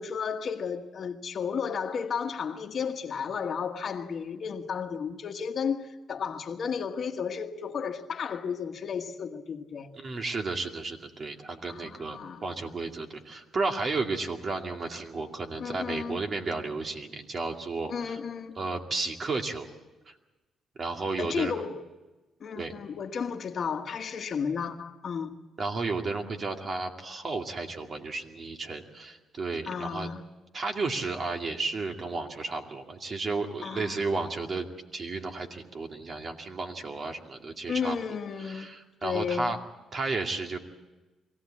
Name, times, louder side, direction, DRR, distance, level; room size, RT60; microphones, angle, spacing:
voice 1, 0.0-9.9 11.7-12.7 15.6-16.2 17.9-18.6 21.2-21.8 22.4-25.3 29.7-30.2 33.6-34.1 37.7-38.7 39.0-39.5, left 6 dB, 55° left, 1.5 m, -33 dB
voice 2, 10.0-18.2 18.6-19.7 20.1-20.2 20.8-21.6 22.6-22.7 25.6-30.1 30.5-34.7 34.9-38.0 38.4-39.6 39.9-40.6, right 3 dB, 45° right, 2.4 m, -33 dB
23.0 x 16.5 x 8.6 m
cardioid pair, 90°, 0 cm